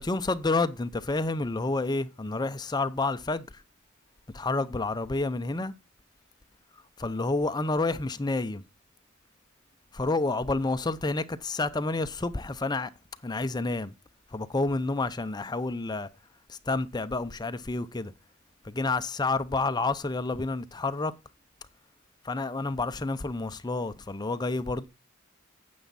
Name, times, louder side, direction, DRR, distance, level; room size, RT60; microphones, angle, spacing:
voice 1, 0.0-3.6 4.3-5.7 6.7-8.6 9.9-12.9 13.2-13.9 14.3-16.1 16.5-18.1 18.6-21.2 22.2-24.8, left 3 dB, 20° left, 0.6 m, -29 dB
9.5 x 7.0 x 4.0 m
head